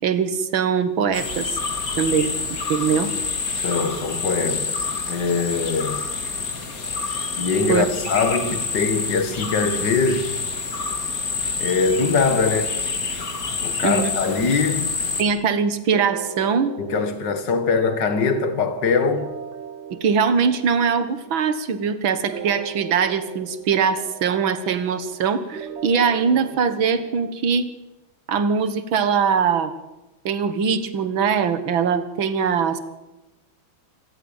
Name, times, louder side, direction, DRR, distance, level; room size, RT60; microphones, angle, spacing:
voice 1, 0.0-1.6 2.0-3.1 7.7-7.9 13.8-14.1 15.2-16.8 19.9-27.7 28.3-29.7 30.3-32.9, right 6 dB, 75° right, 2.3 m, -22 dB
sound 1, 1.1-15.2, left 4 dB, 45° left, 2.7 m, -27 dB
voice 2, 3.6-4.7 5.1-6.0 7.4-10.4 11.6-12.8 13.6-14.9 16.8-19.3, left 4 dB, 60° left, 2.4 m, -22 dB
sound 2, 15.9-27.3, right 7 dB, 45° right, 1.0 m, -39 dB
25.5 x 15.0 x 9.0 m
omnidirectional pair, 2.2 m